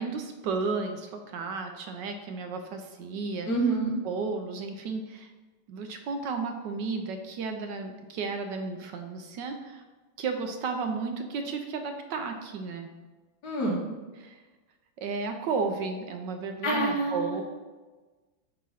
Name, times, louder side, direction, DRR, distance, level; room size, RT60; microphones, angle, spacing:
voice 1, 0.0-3.5 4.0-5.3 5.7-9.8 10.2-12.9 14.2-14.4 15.0-17.4, right 4 dB, 75° right, 6 dB, 1.2 m, -33 dB
voice 2, 3.5-4.0 13.4-13.8 16.6-17.4, right 2 dB, 60° left, -1 dB, 1.7 m, -27 dB
8.3 x 2.9 x 5.5 m, 1.3 s
omnidirectional pair, 2.1 m